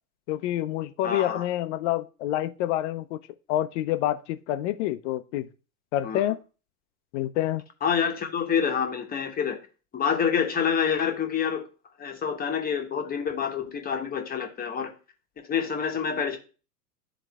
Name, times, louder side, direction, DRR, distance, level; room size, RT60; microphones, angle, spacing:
voice 1, 0.3-3.2 3.5-5.5 5.9-6.4 7.1-7.6, left 13 dB, 50° left, 0.6 m, -27 dB
voice 2, 1.0-1.5 6.0-6.2 7.8-9.6 9.9-11.6 12.0-14.9 15.4-16.4, left 7 dB, 20° left, 0.9 m, -27 dB
11.0 x 3.9 x 2.3 m
hypercardioid pair, 100°, 46 cm